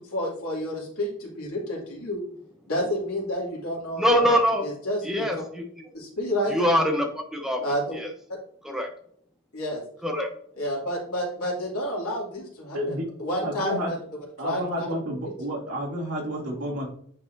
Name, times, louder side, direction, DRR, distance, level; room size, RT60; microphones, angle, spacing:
voice 1, 0.1-2.2 2.7-5.2 5.9-6.5 7.6-8.0 9.5-9.8 10.6-14.0 14.4-14.9, equal, 80° left, -3 dB, 2.5 m, -30 dB
voice 2, 4.0-4.7 5.0-5.7 6.5-7.6 7.9-8.1 8.6-8.9 10.0-10.3, equal, ahead, 3 dB, 0.7 m, -23 dB
voice 3, 12.7-13.1 13.4-13.9 14.4-16.9, equal, 80° right, -3 dB, 2.2 m, -30 dB
9.1 x 4.2 x 2.6 m, 0.62 s
head